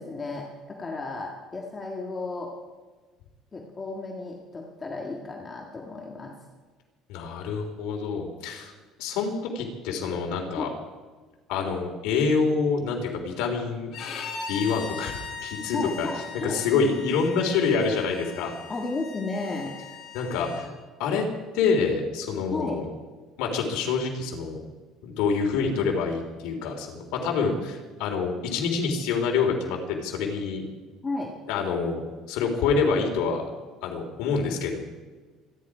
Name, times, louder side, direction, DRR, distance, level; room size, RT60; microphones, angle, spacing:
voice 1, 0.0-2.5 3.5-6.3 10.5-10.7 15.7-16.6 18.7-19.7 22.5-22.8 31.0-31.3, left 3 dB, 20° left, 0 dB, 1.7 m, -33 dB
voice 2, 7.1-8.7 9.0-10.7 11.5-13.9 14.5-16.1 16.4-18.5 20.1-21.3 21.5-22.8 23.4-24.6 25.0-30.6 31.5-32.0 32.3-33.4 33.8-34.8, left 5 dB, 80° left, 2 dB, 3.5 m, -26 dB
Bowed string instrument, 13.9-20.7, left 5 dB, 55° left, 4.2 m, -39 dB
26.5 x 10.5 x 4.9 m, 1.3 s
cardioid pair, 165°, 0 cm